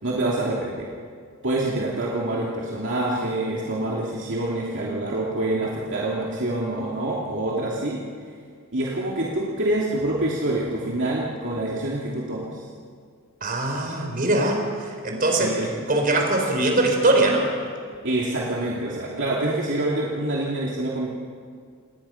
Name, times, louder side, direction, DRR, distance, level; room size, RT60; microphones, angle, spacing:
voice 1, 0.0-0.9 1.4-8.0 8.7-12.7 15.3-15.8 18.0-21.1, right 1 dB, 60° right, -4 dB, 2.8 m, -26 dB
voice 2, 13.4-15.5 15.9-17.5, right 2 dB, 45° right, 2 dB, 4.5 m, -21 dB
28.0 x 20.5 x 5.9 m, 2.1 s
head